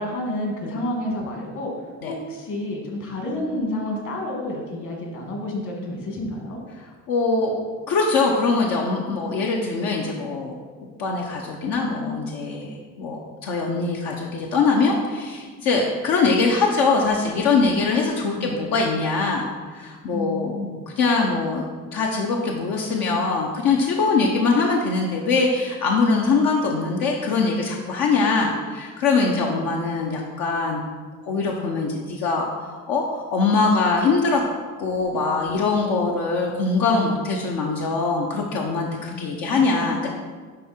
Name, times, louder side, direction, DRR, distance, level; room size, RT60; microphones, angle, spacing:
voice 1, 0.0-1.7 2.1-6.6 18.4-18.6 20.1-20.8 29.4-29.5 39.1-40.0, left 1 dB, 60° left, 0 dB, 2.2 m, -30 dB
voice 2, 7.1-7.6 7.9-10.5 11.0-20.6 20.9-21.7 21.9-30.8 31.2-34.4 34.8-40.1, left 4 dB, 85° left, -1 dB, 0.9 m, -22 dB
10.5 x 3.7 x 4.4 m, 1.5 s
cardioid pair, 110°, 33 cm